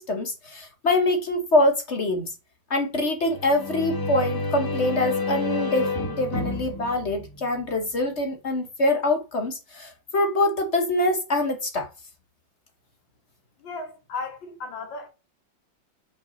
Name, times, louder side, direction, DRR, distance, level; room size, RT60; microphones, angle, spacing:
voice 1, 0.0-2.3 2.7-5.9 6.2-11.9, left 2 dB, 45° left, 1.1 m, -24 dB
sound 1, 3.3-8.0, left 2 dB, 15° left, 1.2 m, -30 dB
voice 2, 13.6-15.1, left 4 dB, 80° left, 2.5 m, -35 dB
5.4 x 4.7 x 4.1 m
omnidirectional pair, 2.1 m